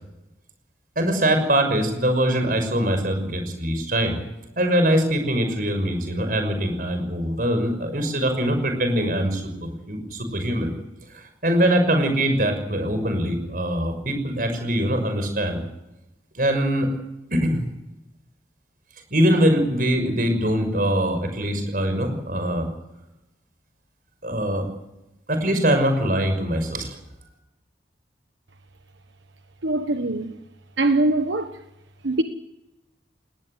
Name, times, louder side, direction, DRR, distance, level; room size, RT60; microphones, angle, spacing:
voice 1, 1.0-4.2 4.6-10.7 11.1-15.6 16.3-16.9 17.3-17.6 19.1-22.7 24.2-24.7 25.3-27.0, right 1 dB, 50° right, 6.1 m, -23 dB
voice 2, 29.6-30.4 30.8-31.6 32.0-32.2, right 2 dB, 85° right, 1.3 m, -22 dB
20.0 x 18.5 x 8.1 m
head